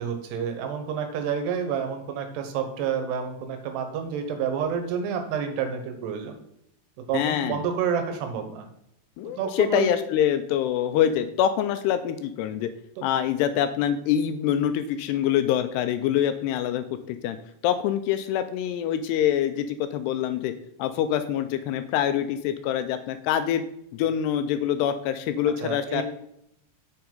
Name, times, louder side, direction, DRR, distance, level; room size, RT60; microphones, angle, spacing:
voice 1, 0.0-6.4 7.1-8.7 9.3-10.0 13.0-13.1 25.6-26.0, right 7 dB, 80° right, 6 dB, 3.0 m, -29 dB
voice 2, 7.1-7.6 9.2-12.7 13.0-17.4 17.6-20.5 20.8-23.6 23.9-26.0, left 10 dB, 85° left, 10 dB, 2.5 m, -25 dB
7.4 x 7.0 x 3.9 m, 0.75 s
omnidirectional pair, 5.0 m